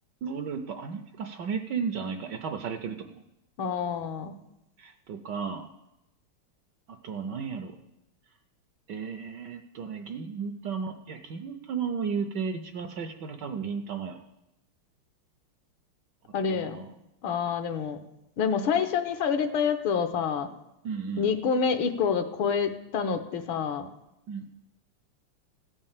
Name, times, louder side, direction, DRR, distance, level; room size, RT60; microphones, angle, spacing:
voice 1, 0.2-3.2 4.8-5.7 6.9-7.7 8.9-14.2 16.5-16.9 20.8-21.3 24.3-24.4, right 6 dB, 70° right, 7 dB, 1.1 m, -34 dB
voice 2, 3.6-4.3 16.3-16.8 17.2-18.0 18.4-20.5 21.2-23.9, left 6 dB, 70° left, 8 dB, 1.6 m, -27 dB
16.0 x 5.4 x 7.3 m, 0.88 s
omnidirectional pair, 2.4 m